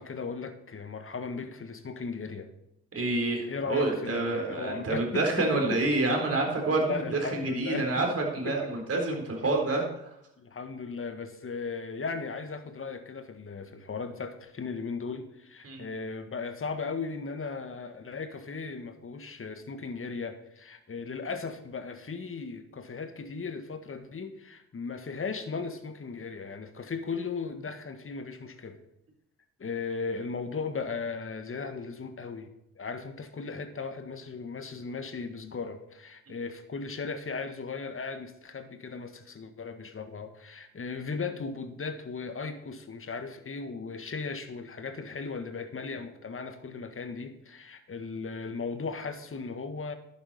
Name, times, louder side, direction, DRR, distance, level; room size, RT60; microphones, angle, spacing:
voice 1, 0.0-2.5 3.5-5.8 6.7-7.9 8.4-8.6 8.9-9.5 10.4-28.8 29.6-49.9, left 4 dB, 40° left, 9 dB, 1.7 m, -37 dB
voice 2, 2.9-10.1 15.6-15.8, right 2 dB, 45° right, 1 dB, 4.1 m, -28 dB
11.5 x 9.1 x 4.3 m, 0.85 s
hypercardioid pair, 40°, 33 cm